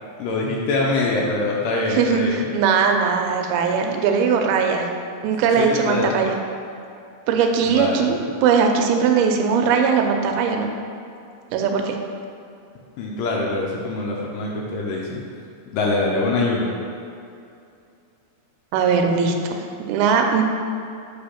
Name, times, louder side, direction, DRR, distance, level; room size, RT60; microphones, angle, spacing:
voice 1, 0.2-2.5 5.6-6.2 7.6-8.1 13.0-15.2 15.7-16.7, left 2 dB, 90° left, -2 dB, 1.9 m, -24 dB
voice 2, 1.9-4.9 5.2-6.4 7.3-10.7 11.5-12.0 18.7-20.4, right 6 dB, 85° right, 3 dB, 2.4 m, -20 dB
5.4 x 3.4 x 5.6 m, 2.5 s
omnidirectional pair, 4.5 m